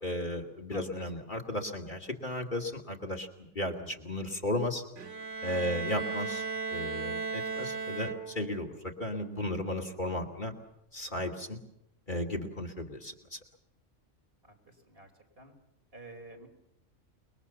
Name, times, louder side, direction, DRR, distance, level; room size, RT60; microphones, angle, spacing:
voice 1, 0.0-3.3 3.5-4.8 5.4-6.4 6.7-10.5 10.9-11.6 12.1-13.4, left 1 dB, 40° left, 2 dB, 2.6 m, -35 dB
Bowed string instrument, 5.0-8.6, right 5 dB, 80° right, 2.1 m, -36 dB
voice 2, 14.4-15.1 15.4-15.5 15.9-16.5, right 2 dB, 50° right, 2 dB, 4.9 m, -50 dB
29.0 x 22.0 x 7.1 m, 0.83 s
omnidirectional pair, 1.3 m